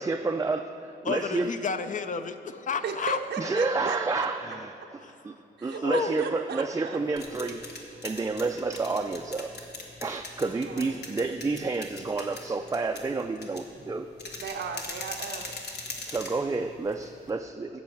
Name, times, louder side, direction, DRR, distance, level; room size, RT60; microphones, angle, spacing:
voice 1, 0.0-1.5 3.4-5.4 5.6-7.6 8.0-9.7 10.0-14.1 16.0-17.7, right 3 dB, 20° right, 5 dB, 0.4 m, -30 dB
voice 2, 1.0-3.2 5.0-5.1 5.7-6.1, left 5 dB, 45° left, 10 dB, 0.6 m, -31 dB
voice 3, 2.8-4.3 5.6-7.0 10.7-10.9 14.4-15.6, right 6 dB, 75° right, 3 dB, 0.6 m, -36 dB
sound 1, 6.9-17.3, left 3 dB, 65° left, 1.4 m, -41 dB
8.4 x 6.2 x 7.8 m, 2.7 s
cardioid pair, 75°, 18 cm